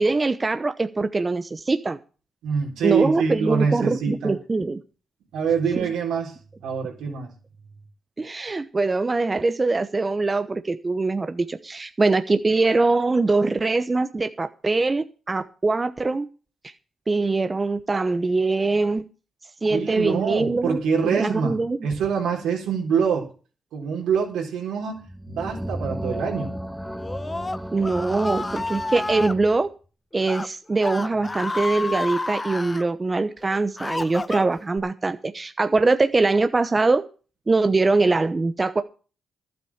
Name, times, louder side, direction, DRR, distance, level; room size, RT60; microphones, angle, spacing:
voice 1, 0.0-2.0 2.8-4.8 5.8-5.9 8.2-16.3 16.6-16.7 17.1-19.1 19.6-20.8 21.0-21.8 27.7-29.7 30.1-37.0 37.5-38.8, right 3 dB, 30° right, 10 dB, 0.9 m, -23 dB
voice 2, 2.4-4.3 5.3-6.4 6.6-7.3 19.7-23.3 23.7-26.5, right 6 dB, 85° right, 0 dB, 4.1 m, -25 dB
sound 1, 25.0-29.6, equal, ahead, 1.5 m, -34 dB
Screaming, 27.0-29.3 30.1-30.5 30.8-32.8 33.4-34.8, left 2 dB, 25° left, 0.8 m, -30 dB
12.0 x 8.0 x 7.2 m, 0.37 s
supercardioid pair, 55°, 0 cm